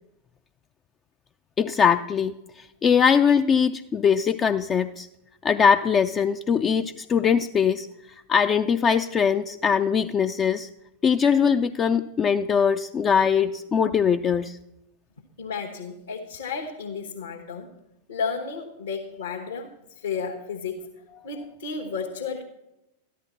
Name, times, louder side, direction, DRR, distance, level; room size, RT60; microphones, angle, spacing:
voice 1, 1.6-5.1 5.4-7.9 8.3-10.7 11.0-14.6, left 7 dB, 25° left, 9 dB, 0.4 m, -21 dB
voice 2, 15.4-17.7 18.1-20.8 21.2-22.4, left 5 dB, 65° left, 0 dB, 1.4 m, -32 dB
13.5 x 11.0 x 4.2 m, 0.88 s
figure-of-eight pair, 90°, 0 cm